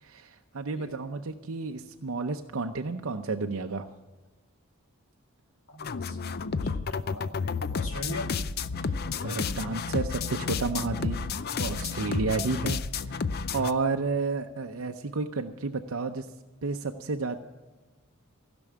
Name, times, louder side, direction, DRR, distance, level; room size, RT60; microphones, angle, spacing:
voice 1, 0.0-3.9 8.8-8.9 9.2-11.2 11.6-13.2 13.5-16.3 16.6-17.4, right 4 dB, 70° right, 4 dB, 0.7 m, -31 dB
voice 2, 5.7-8.4, left 1 dB, 90° left, 1 dB, 2.7 m, -40 dB
sound 1, 5.8-13.7, left 5 dB, 45° left, 0.5 m, -31 dB
16.0 x 6.2 x 9.7 m, 1.2 s
head